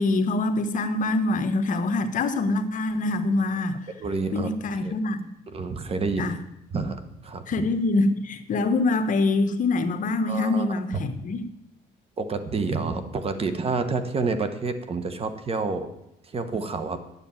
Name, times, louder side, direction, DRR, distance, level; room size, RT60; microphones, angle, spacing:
voice 1, 0.0-3.8 4.3-5.2 6.2-6.3 7.5-11.4, left 2 dB, 50° left, 9 dB, 1.1 m, -24 dB
voice 2, 4.0-4.5 4.8-4.9 5.5-6.3 6.7-7.0 7.2-7.7 10.2-10.7 12.2-15.9 16.3-17.0, right 4 dB, 35° right, 9 dB, 1.3 m, -28 dB
9.6 x 7.2 x 8.8 m, 0.84 s
cardioid pair, 110°, 17 cm